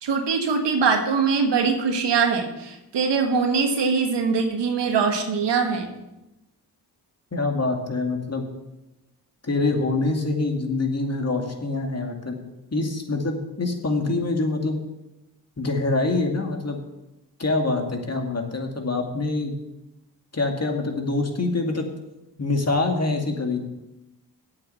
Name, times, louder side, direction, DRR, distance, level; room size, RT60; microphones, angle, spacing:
voice 1, 0.0-5.9, right 5 dB, 90° right, 5 dB, 1.5 m, -22 dB
voice 2, 7.3-8.5 9.4-12.4 12.7-14.8 15.6-16.8 17.4-19.5 20.3-21.9 22.4-23.6, left 3 dB, 35° left, 3 dB, 2.3 m, -25 dB
8.4 x 7.1 x 8.6 m, 0.96 s
cardioid pair, 50°, 41 cm